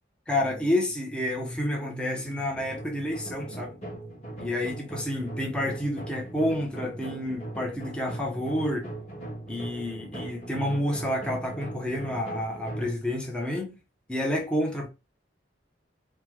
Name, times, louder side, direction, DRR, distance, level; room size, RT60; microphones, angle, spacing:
voice 1, 0.3-3.7 4.4-8.9 9.5-13.7 14.1-14.9, left 1 dB, 5° left, 0.5 m, -29 dB
sound 1, 2.5-12.9, right 1 dB, 35° left, 1.2 m, -39 dB
3.1 x 2.0 x 3.3 m
head